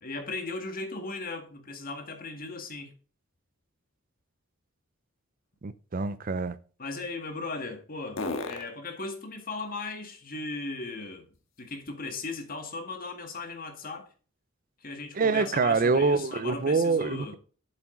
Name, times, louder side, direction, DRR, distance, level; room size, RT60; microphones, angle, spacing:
voice 1, 0.0-2.9 6.8-11.3 11.6-14.1 14.8-17.4, left 3 dB, 45° left, 1.9 m, -37 dB
sound 1, 3.2-12.2 12.7-16.5, left 2 dB, 85° left, 1.6 m, -46 dB
voice 2, 5.6-6.6 15.2-17.4, right 4 dB, 45° right, 0.6 m, -25 dB
7.6 x 7.3 x 3.8 m
head